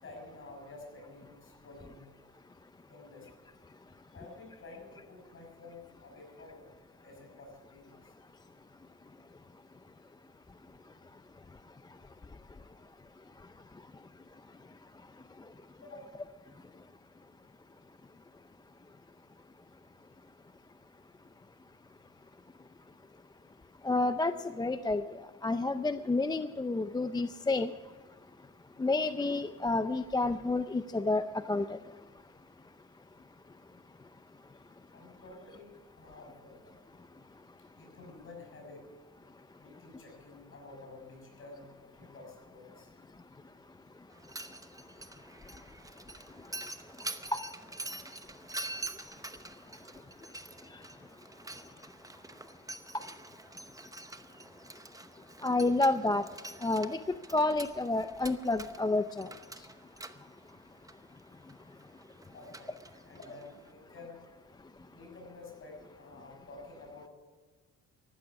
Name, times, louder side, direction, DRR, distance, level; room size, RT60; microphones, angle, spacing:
voice 1, 0.0-2.1 2.9-3.4 4.1-6.7 7.0-8.1 15.8-16.2 34.9-36.7 37.8-38.9 39.6-41.7 41.9-42.9 50.3-50.5 62.3-62.7 63.0-64.2 64.9-67.1, left 2 dB, 45° left, 1 dB, 6.2 m, -50 dB
voice 2, 23.8-25.0 25.4-27.7 28.8-31.8 47.3-47.4 55.4-56.2 56.6-57.0 57.3-59.3, left 2 dB, 15° left, 11 dB, 0.4 m, -29 dB
Mechanisms, 44.1-63.7, right 2 dB, 10° right, 0.8 m, -46 dB
14.5 x 12.0 x 6.0 m, 1.4 s
cardioid pair, 90°, 30 cm